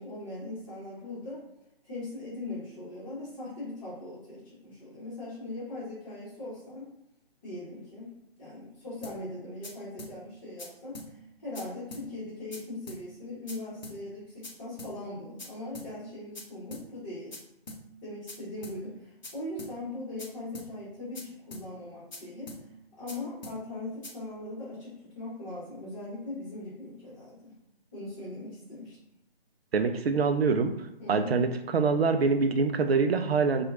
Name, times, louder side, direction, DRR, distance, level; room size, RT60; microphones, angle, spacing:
voice 1, 0.0-1.4 1.8-6.9 7.4-8.1 8.4-17.3 18.0-22.5 23.0-27.5 27.9-29.0 31.0-31.5, left 2 dB, 30° left, -11 dB, 1.2 m, -40 dB
sound 1, 9.0-9.2 9.6-9.7 10.0-10.1 10.6-10.7 10.9-11.1 11.5-11.6 11.9-12.0 12.5-12.6 12.9-13.0 13.5-13.6 13.8-14.0 14.4-14.5 14.8-14.9 15.4-15.5 15.7-15.9 16.3-16.4 16.7-16.8 17.3-17.4 17.7-17.8 18.3-18.4 18.6-18.8 19.2-19.3 19.6-19.7 20.2-20.3 20.5-20.7 21.1-21.2 21.5-21.6 22.1-22.2 22.5-22.6 23.1-23.2 23.4-23.6 24.0-24.1, left 2 dB, 45° left, 0.6 m, -42 dB
voice 2, 29.7-30.7 31.1-31.5 31.7-33.6, right 4 dB, 75° right, 8 dB, 0.5 m, -24 dB
2.8 x 2.4 x 2.4 m, 0.83 s
figure-of-eight pair, 145°, 31 cm